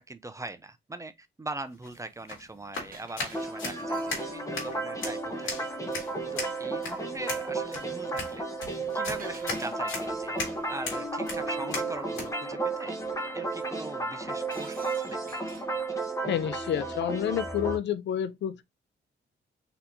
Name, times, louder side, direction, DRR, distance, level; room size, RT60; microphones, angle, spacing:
voice 1, 0.0-5.5 6.3-8.4 8.9-10.4 10.7-13.0 13.3-15.4, right 2 dB, 15° right, 0.5 m, -41 dB
sound 1, 1.7-12.3, left 3 dB, 90° left, 1.9 m, -38 dB
Shatter, 2.9-4.6 9.2-10.2 14.5-15.8, right 5 dB, 45° right, 0.8 m, -50 dB
sound 2, 3.3-17.8, right 3 dB, 15° left, 0.9 m, -33 dB
voice 2, 16.3-18.6, left 10 dB, 65° left, 0.4 m, -29 dB
4.2 x 2.8 x 2.7 m
cardioid pair, 115°, 20 cm